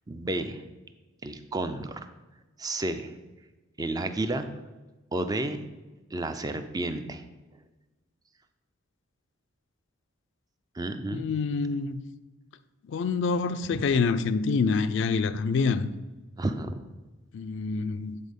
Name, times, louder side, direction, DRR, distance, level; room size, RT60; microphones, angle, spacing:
voice 1, 0.1-0.6 1.2-2.0 2.6-3.1 3.8-4.5 5.1-5.6 6.1-7.2 10.8-11.3 13.7-13.8 16.4-16.8, right 2 dB, 20° right, 0.4 m, -31 dB
voice 2, 11.1-12.0 12.9-15.9 17.3-18.2, left 4 dB, 60° left, 0.4 m, -26 dB
8.4 x 4.0 x 5.2 m
head